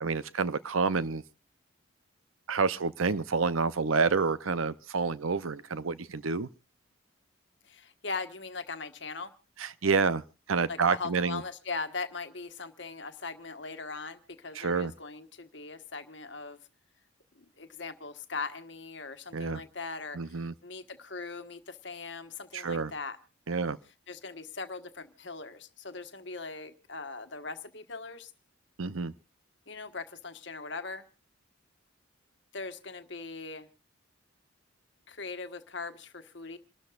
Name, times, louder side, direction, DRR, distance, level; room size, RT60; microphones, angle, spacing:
voice 1, 0.0-1.2 2.5-6.5 9.6-10.2 10.5-11.4 14.6-14.9 19.3-19.6 20.1-20.5 22.5-22.9 23.5-23.8 28.8-29.1, right 4 dB, 85° right, 0.7 m, -28 dB
voice 2, 7.6-9.3 10.7-16.6 17.3-23.2 24.1-28.3 29.7-31.1 32.5-33.7 35.1-36.6, left 4 dB, 60° left, 1.4 m, -40 dB
28.0 x 12.5 x 2.5 m
head